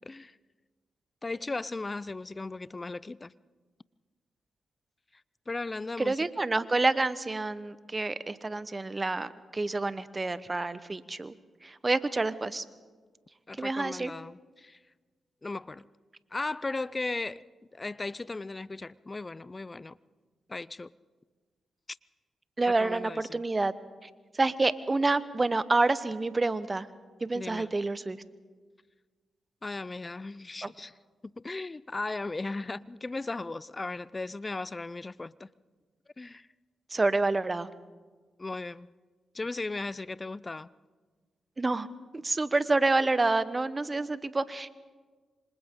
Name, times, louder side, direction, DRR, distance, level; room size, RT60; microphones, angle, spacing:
voice 1, 1.2-3.3 5.5-6.2 13.5-14.8 15.4-15.8 16.3-17.4 17.7-20.0 20.5-20.9 22.7-23.4 27.3-27.7 29.6-30.9 31.2-35.5 36.2-36.5 38.4-38.9 39.3-40.7, left 3 dB, 35° left, 0.5 m, -36 dB
voice 2, 6.0-11.3 11.6-12.6 13.6-14.1 22.6-23.7 24.4-26.9 27.2-28.2 30.6-30.7 36.9-37.7 41.6-41.9 42.2-44.7, right 3 dB, 30° right, 1.1 m, -28 dB
26.5 x 26.0 x 3.8 m
hypercardioid pair, 40°, 0 cm